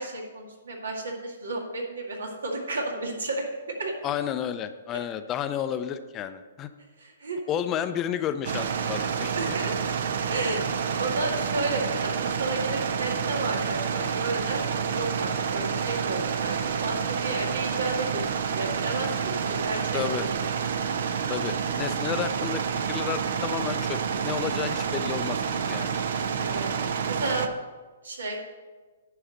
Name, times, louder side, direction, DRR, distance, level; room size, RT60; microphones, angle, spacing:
voice 1, 0.0-3.5 3.8-3.9 7.0-7.4 9.4-9.7 10.3-10.7 11.0-18.2 18.5-20.3 26.4-26.7 27.1-27.5 28.0-28.4, right 2 dB, 85° right, 1 dB, 2.0 m, -32 dB
voice 2, 4.0-6.7 7.5-9.6 19.9-20.2 21.3-22.6 22.9-25.9, left 9 dB, 25° left, 11 dB, 0.5 m, -31 dB
sound 1, 8.4-27.5, right 6 dB, 65° right, 0.7 m, -29 dB
10.0 x 4.8 x 6.4 m, 1.3 s
hypercardioid pair, 135°, 0 cm